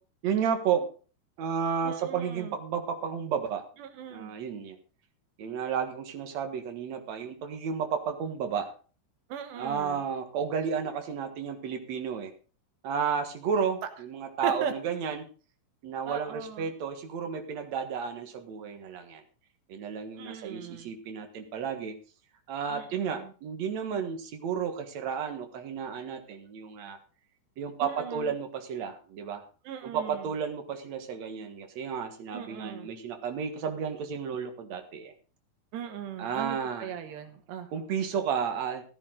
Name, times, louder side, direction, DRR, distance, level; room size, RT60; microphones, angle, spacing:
voice 1, 0.2-0.9 1.4-3.6 4.1-4.8 5.4-8.7 9.6-12.3 12.8-15.3 15.8-19.2 19.7-21.9 22.5-27.0 27.6-29.4 29.8-35.1 36.2-36.9 37.7-38.8, right 7 dB, 55° right, 5 dB, 2.3 m, -32 dB
voice 2, 1.8-2.6 3.8-4.3 9.3-10.1 14.4-14.7 16.1-16.7 20.2-20.9 22.7-23.3 27.8-28.3 29.7-30.3 32.3-32.9 35.7-37.7, right 8 dB, 85° right, 7 dB, 3.7 m, -38 dB
15.5 x 11.0 x 3.8 m, 0.37 s
omnidirectional pair, 4.7 m